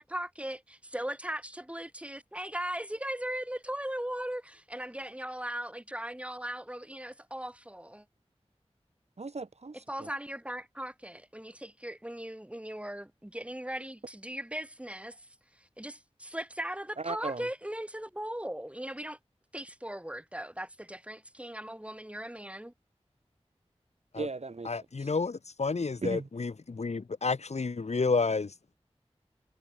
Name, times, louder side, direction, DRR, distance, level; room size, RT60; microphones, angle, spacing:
voice 1, 0.0-8.0 9.9-15.3 15.6-19.2 19.5-22.7, right 1 dB, 10° right, 3.1 m, -38 dB
voice 2, 9.2-10.1 17.0-17.5 24.2-24.7 25.0-25.1 26.0-26.3, right 3 dB, 75° right, 5.0 m, -37 dB
voice 3, 24.7-28.5, left 4 dB, 85° left, 1.9 m, -30 dB
wide cardioid pair, 70°, 11 cm